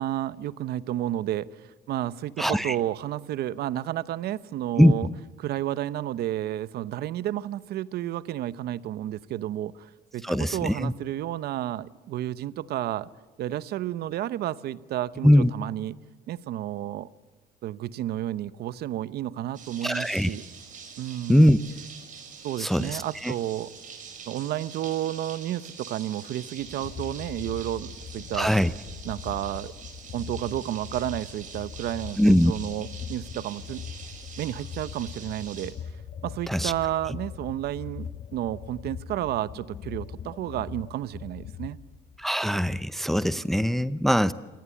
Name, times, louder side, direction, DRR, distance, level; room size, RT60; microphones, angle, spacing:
voice 1, 0.0-5.1 5.4-13.1 13.4-16.0 16.3-17.1 17.6-20.4 21.0-21.5 22.4-23.7 24.3-28.5 29.0-29.7 30.1-33.8 34.4-35.7 36.2-41.8, right 13 dB, 70° right, 17 dB, 0.9 m, -31 dB
voice 2, 2.4-2.8 4.8-4.9 10.2-10.9 15.2-15.5 19.8-20.3 21.3-21.6 22.6-23.3 28.3-28.7 32.2-32.5 36.5-36.7 42.2-44.3, equal, ahead, 14 dB, 0.7 m, -21 dB
sound 1, 19.5-35.7, right 6 dB, 50° right, 5.2 m, -45 dB
sound 2, 26.6-42.2, left 8 dB, 50° left, 1.2 m, -41 dB
27.0 x 19.0 x 8.4 m, 1.3 s
cardioid pair, 110°, 17 cm